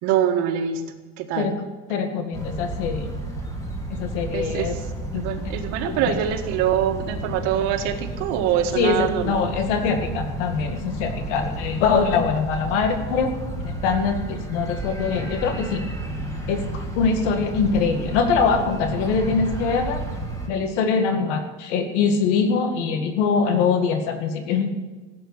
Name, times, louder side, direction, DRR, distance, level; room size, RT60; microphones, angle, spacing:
voice 1, 0.0-1.5 4.3-4.7 5.1-9.4, right 9 dB, 60° right, 5 dB, 1.8 m, -24 dB
voice 2, 1.9-3.1 3.9-4.8 5.1-5.3 5.8-6.2 8.8-13.4 13.6-15.8 16.5-20.0 20.5-24.7, left 5 dB, 90° left, 6 dB, 2.1 m, -23 dB
sound 1, 2.3-20.5, right 1 dB, 10° left, 1.7 m, -32 dB
16.0 x 8.1 x 9.7 m, 1.2 s
cardioid pair, 175°, 34 cm